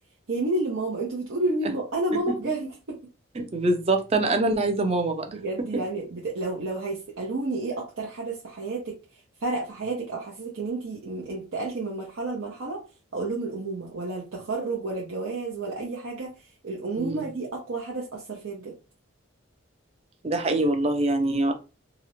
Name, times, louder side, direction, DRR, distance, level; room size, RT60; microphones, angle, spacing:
voice 1, 0.3-2.7 5.3-9.0 9.4-12.8 13.1-16.3 16.6-18.7, right 2 dB, 80° right, 0.6 m, -30 dB
voice 2, 3.4-5.3 17.0-17.3 20.2-21.5, right 2 dB, 30° right, 0.4 m, -24 dB
2.4 x 2.0 x 2.9 m
head